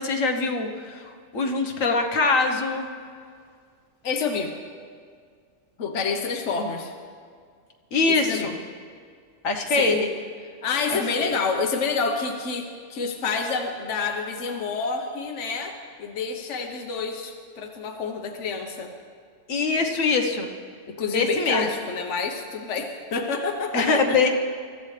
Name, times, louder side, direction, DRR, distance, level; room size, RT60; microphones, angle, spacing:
voice 1, 0.0-2.9 7.9-8.5 9.4-10.1 10.9-11.4 19.5-20.5 21.1-21.7 23.7-24.4, left 3 dB, 85° left, 3 dB, 1.6 m, -23 dB
voice 2, 4.0-4.5 5.8-6.9 8.1-8.5 9.7-10.0 10.6-18.9 20.9-24.2, left 5 dB, 65° left, 4 dB, 1.3 m, -28 dB
23.5 x 14.0 x 3.3 m, 2.1 s
omnidirectional pair, 1.3 m